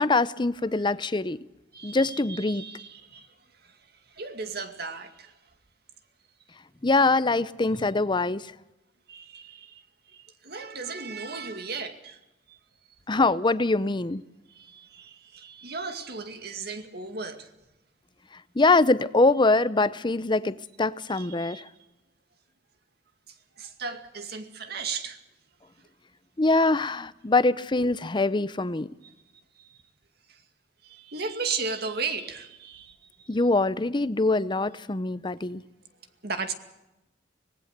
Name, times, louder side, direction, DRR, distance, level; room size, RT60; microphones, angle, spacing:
voice 1, 0.0-1.4 1.8-2.6 6.8-8.5 13.1-14.2 18.6-21.7 26.4-28.9 33.3-35.6, left 3 dB, 25° left, 0.7 m, -23 dB
voice 2, 1.7-3.3 3.6-3.8 4.1-5.3 9.1-9.8 10.1-12.2 12.5-12.6 14.5-17.5 21.1-21.6 23.6-25.2 29.0-29.1 29.6-29.8 30.3-30.4 30.8-33.3 36.2-36.5, right 4 dB, 60° right, 2.3 m, -36 dB
25.0 x 19.5 x 6.8 m
head